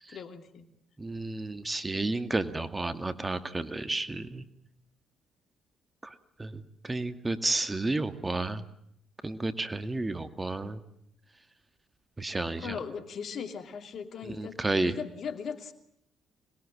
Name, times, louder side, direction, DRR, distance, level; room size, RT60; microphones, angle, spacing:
voice 1, 0.1-0.7 12.6-14.6 14.8-15.7, left 6 dB, 60° left, 8 dB, 2.7 m, -38 dB
voice 2, 1.0-4.4 6.4-8.6 9.2-10.8 12.2-12.8 14.4-14.9, right 2 dB, 20° right, 10 dB, 2.2 m, -31 dB
26.0 x 21.0 x 8.8 m, 0.74 s
hypercardioid pair, 50°, 0 cm